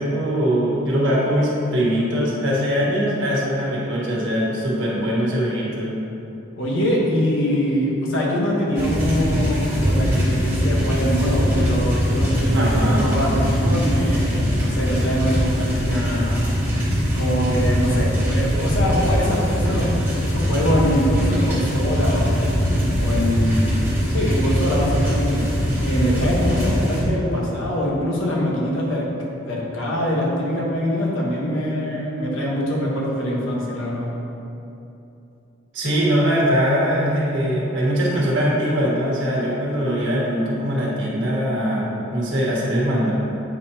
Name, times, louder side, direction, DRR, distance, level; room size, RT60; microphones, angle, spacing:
voice 1, 0.0-5.9 12.5-13.1 35.7-43.1, equal, 65° right, -5 dB, 1.4 m, -21 dB
voice 2, 6.6-16.5 17.1-19.9 20.2-22.3 22.9-23.8 24.1-25.4 25.8-29.1 29.4-34.1, equal, 75° left, -3 dB, 1.2 m, -23 dB
sound 1, 8.7-27.0, equal, 10° right, 1.4 m, -21 dB
7.9 x 5.1 x 2.8 m, 2.9 s
head